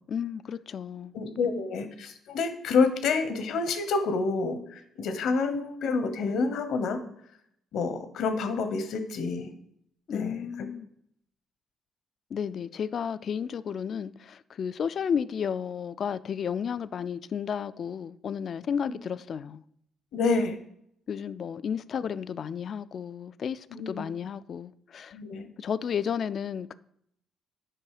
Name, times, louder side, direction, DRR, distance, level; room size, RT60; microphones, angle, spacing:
voice 1, 0.1-1.1 10.1-10.9 12.3-19.6 21.1-25.2 25.6-26.7, left 7 dB, 55° left, 0.3 m, -32 dB
voice 2, 1.1-7.0 7.7-9.5 10.1-10.4 18.8-18.9 20.1-20.6 23.7-24.1 25.1-25.5, left 4 dB, 75° left, 1.0 m, -28 dB
7.6 x 5.3 x 4.8 m
cardioid pair, 90°, 0 cm